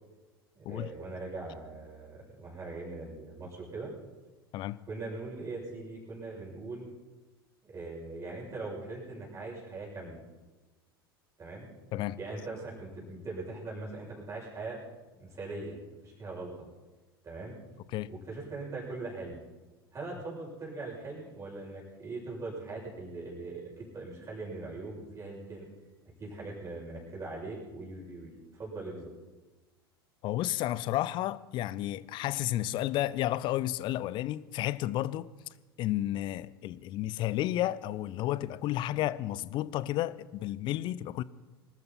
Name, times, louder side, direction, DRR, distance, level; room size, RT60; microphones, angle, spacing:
voice 1, 0.6-3.9 4.9-6.9 7.6-10.2 11.4-11.7 12.2-14.8 15.2-16.5 17.2-17.6 18.1-19.4 19.9-25.7 26.2-29.1, right 3 dB, 25° right, 7.0 m, -41 dB
voice 2, 30.2-35.3 35.8-41.2, left 14 dB, 40° left, 0.6 m, -32 dB
24.5 x 13.5 x 4.3 m
figure-of-eight pair, 80°, 13 cm